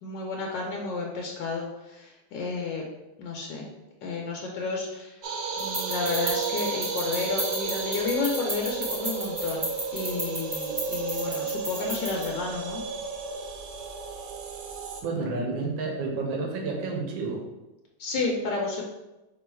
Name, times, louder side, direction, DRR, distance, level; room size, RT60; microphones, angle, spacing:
voice 1, 0.0-2.9 3.2-3.7 4.0-5.2 5.6-12.8 18.0-18.8, left 4 dB, 80° left, 0 dB, 1.3 m, -31 dB
sound 1, 5.2-15.0, right 5 dB, 75° right, 1.2 m, -33 dB
sound 2, 5.6-12.3, right 1 dB, 45° right, 0.4 m, -34 dB
voice 2, 15.0-17.4, right 3 dB, 90° right, 1 dB, 1.6 m, -30 dB
3.9 x 3.1 x 4.3 m, 1.0 s
omnidirectional pair, 2.0 m